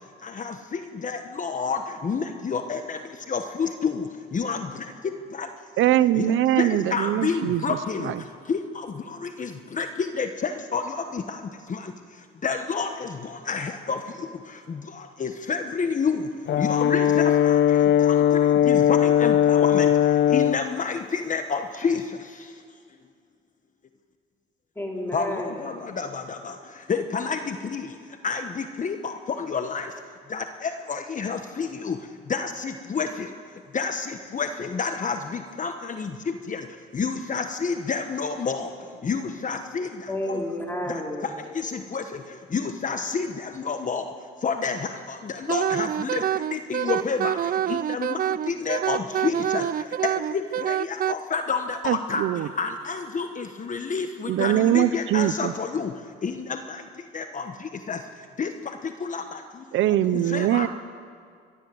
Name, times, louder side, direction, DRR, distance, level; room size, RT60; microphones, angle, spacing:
voice 1, 0.2-3.0 3.3-4.1 4.3-4.7 5.4-5.5 6.1-6.2 6.6-8.1 8.5-8.9 9.2-11.4 11.7-11.8 12.4-13.1 13.5-14.0 15.2-16.2 16.6-17.6 18.0-18.1 18.6-19.9 20.3-22.0 25.1-26.5 26.9-27.9 28.2-29.9 30.3-32.0 32.3-33.3 33.7-36.6 36.9-38.7 39.0-39.9 40.3-40.4 40.9-41.0 41.6-42.0 42.5-44.0 44.4-46.2 46.5-47.4 47.7-48.2 48.5-49.6 50.3-52.2 52.6-55.9 56.2-56.8 57.1-57.4 57.9-58.0 58.4-58.5 59.0-59.2 60.1-60.7, left 5 dB, 40° left, 7 dB, 1.2 m, -29 dB
voice 2, 5.8-7.8 8.0-8.2 51.8-52.5 54.3-55.5 59.7-60.7, right 12 dB, 80° right, 15 dB, 0.7 m, -22 dB
Brass instrument, 16.5-20.6, left 9 dB, 65° left, 0.8 m, -19 dB
voice 3, 24.7-25.6 40.1-41.6, left 1 dB, 10° left, -1 dB, 4.6 m, -31 dB
Wind instrument woodwind instrument, 45.5-51.2, right 10 dB, 45° right, 0.5 m, -26 dB
30.0 x 12.5 x 7.8 m, 2.2 s
cardioid pair, 90°, 20 cm